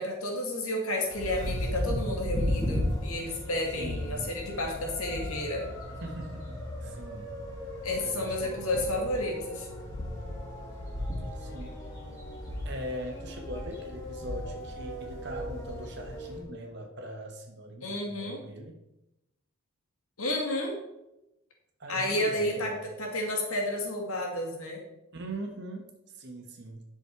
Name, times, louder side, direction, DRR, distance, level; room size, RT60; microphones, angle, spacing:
voice 1, 0.0-5.7 7.8-9.6 17.8-18.4 20.2-20.8 21.9-24.8, left 1 dB, 80° left, 1 dB, 2.3 m, -31 dB
sound 1, 1.1-16.4, left 1 dB, 15° left, 2.7 m, -36 dB
voice 2, 3.7-4.3 5.9-7.3 8.0-9.4 11.3-11.8 12.6-18.7 21.8-22.8 25.1-26.8, right 1 dB, 50° right, 2 dB, 1.4 m, -41 dB
11.0 x 6.4 x 4.8 m, 0.90 s
head